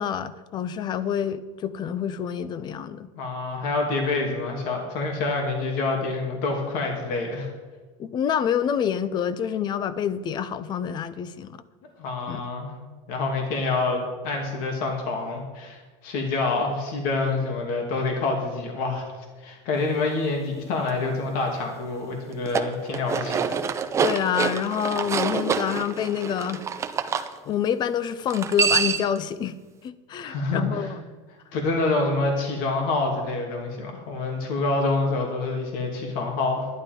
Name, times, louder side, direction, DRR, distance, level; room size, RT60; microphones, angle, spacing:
voice 1, 0.0-3.1 8.0-11.6 12.3-12.4 24.0-26.6 27.0-27.1 27.4-29.6 29.8-31.0, left 8 dB, 25° left, 0.5 m, -27 dB
voice 2, 3.2-7.5 12.0-12.7 13.1-19.1 19.4-23.6 30.2-30.9 31.5-36.7, left 3 dB, 50° left, 2.6 m, -27 dB
sound 1, 22.3-27.3 28.3-29.2, right 6 dB, 15° right, 0.6 m, -26 dB
11.5 x 11.0 x 5.3 m
supercardioid pair, 155°, 18 cm